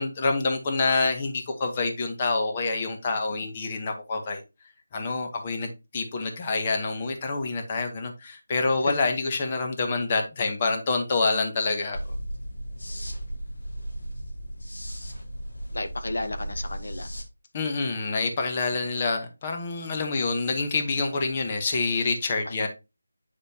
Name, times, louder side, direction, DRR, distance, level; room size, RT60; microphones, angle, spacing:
voice 1, 0.0-4.4 4.9-12.0 17.5-22.7, left 3 dB, 25° left, 1.0 m, -27 dB
sound 1, 11.9-17.2, right 1 dB, 85° left, 2.4 m, -35 dB
voice 2, 15.7-17.1 22.4-22.7, left 2 dB, 65° left, 0.9 m, -33 dB
9.0 x 5.0 x 2.8 m
figure-of-eight pair, 170°, 0 cm